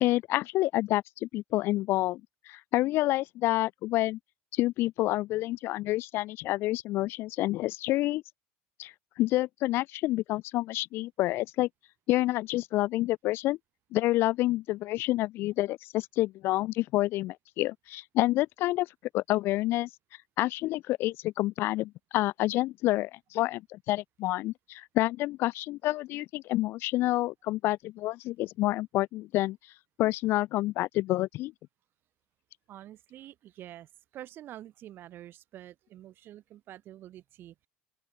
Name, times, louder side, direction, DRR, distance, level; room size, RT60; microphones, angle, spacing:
voice 1, 0.0-2.2 2.5-4.2 4.5-8.2 8.8-11.7 12.1-13.6 13.9-18.9 19.1-19.9 20.4-29.6 30.0-31.5, left 17 dB, 55° left, 0.4 m, -28 dB
voice 2, 32.7-37.7, right 13 dB, 50° right, 1.9 m, -47 dB
open air
supercardioid pair, 100°, 5 cm